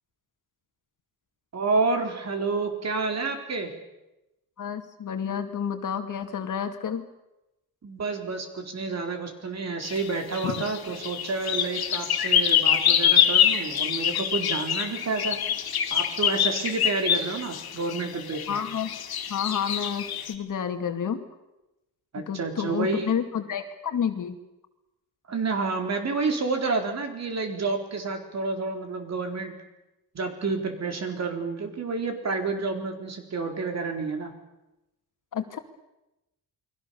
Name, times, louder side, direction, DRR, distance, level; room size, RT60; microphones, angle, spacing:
voice 1, 1.5-3.7 7.8-15.4 15.9-18.6 22.1-23.1 25.3-29.5 30.1-34.3, right 4 dB, 45° right, 5 dB, 4.1 m, -29 dB
voice 2, 4.6-7.0 10.4-10.6 18.5-18.9 19.3-21.2 22.3-24.4 35.3-35.6, left 7 dB, 55° left, 7 dB, 2.3 m, -30 dB
sound 1, 9.8-20.3, left 9 dB, 70° left, 2.6 m, -25 dB
29.0 x 22.0 x 7.1 m, 0.96 s
cardioid pair, 145°, 38 cm